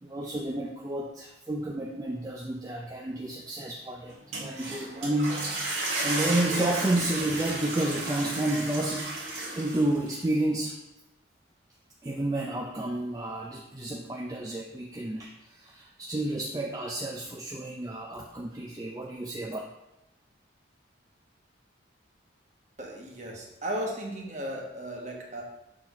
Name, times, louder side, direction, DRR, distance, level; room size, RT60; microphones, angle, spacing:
voice 1, 0.0-5.4 6.0-9.2 9.5-10.8 12.0-19.6, right 1 dB, 20° right, 0 dB, 0.4 m, -31 dB
sound 1, 4.1-10.1, right 2 dB, 80° right, 1.7 m, -33 dB
voice 2, 22.8-25.4, right 1 dB, 35° right, -1 dB, 1.2 m, -35 dB
6.5 x 4.0 x 4.2 m, 0.94 s
head